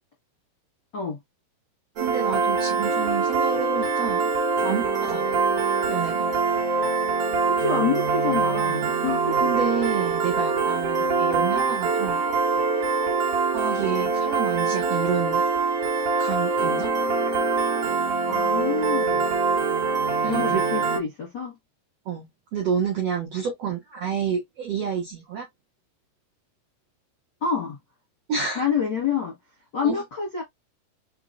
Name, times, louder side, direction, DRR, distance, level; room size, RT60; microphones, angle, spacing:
Piano, 2.0-21.0, right 4 dB, 70° right, 1.4 m, -24 dB
voice 1, 2.0-4.3 4.6-5.4 5.9-6.3 9.4-12.2 13.5-15.5 16.2-17.0 20.2-20.6 22.0-25.5 28.3-28.7 29.8-30.0, right 7 dB, 85° right, 1.3 m, -29 dB
voice 2, 7.6-9.4 18.2-19.3 20.2-21.6 27.4-27.8 28.5-29.3 29.7-30.4, left 6 dB, 80° left, 1.0 m, -27 dB
5.9 x 3.0 x 2.5 m
omnidirectional pair, 4.7 m